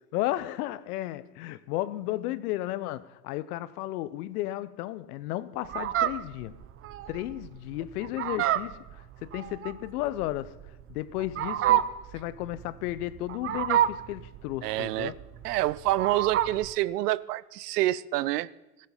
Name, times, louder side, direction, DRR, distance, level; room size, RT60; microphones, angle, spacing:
voice 1, 0.1-6.6 7.1-10.5 10.9-15.2, left 15 dB, 70° left, 0.7 m, -34 dB
Fowl, 5.6-16.7, right 12 dB, 30° right, 0.5 m, -29 dB
voice 2, 14.6-15.1 15.4-18.5, right 16 dB, 80° right, 0.6 m, -27 dB
16.5 x 7.5 x 5.4 m
hypercardioid pair, 85°, 47 cm